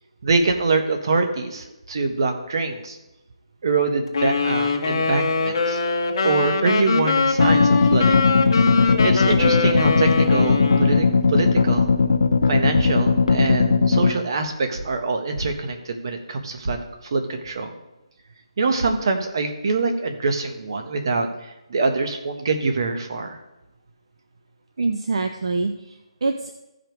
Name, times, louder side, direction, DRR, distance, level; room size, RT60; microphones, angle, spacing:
voice 1, 0.2-3.0 3.6-5.8 6.2-8.2 9.0-11.9 12.5-16.8 17.0-17.7 18.6-23.4, right 3 dB, 50° right, 5 dB, 1.4 m, -24 dB
Wind instrument woodwind instrument, 4.1-11.1, left 4 dB, 50° left, 1.2 m, -22 dB
sound 1, 7.4-14.1, left 4 dB, 75° left, 0.9 m, -18 dB
voice 2, 24.8-26.6, right 3 dB, 65° right, 6 dB, 0.8 m, -25 dB
14.5 x 5.2 x 4.7 m, 0.97 s
hypercardioid pair, 170°, 3 cm